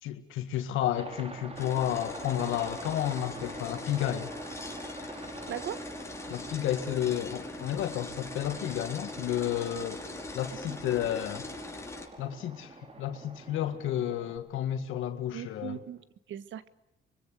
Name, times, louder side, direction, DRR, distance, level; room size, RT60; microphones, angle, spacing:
voice 1, 0.0-4.3 6.3-10.0 10.3-11.5 12.2-15.8, left 11 dB, 90° left, 2.0 m, -31 dB
Aircraft, 0.9-14.4, right 3 dB, 30° right, 3.5 m, -46 dB
sound 1, 1.6-12.1, left 2 dB, 15° left, 5.0 m, -41 dB
voice 2, 5.5-5.9 10.7-10.8 15.3-16.7, right 10 dB, 70° right, 1.5 m, -39 dB
25.5 x 23.0 x 6.7 m
cardioid pair, 90°, 20 cm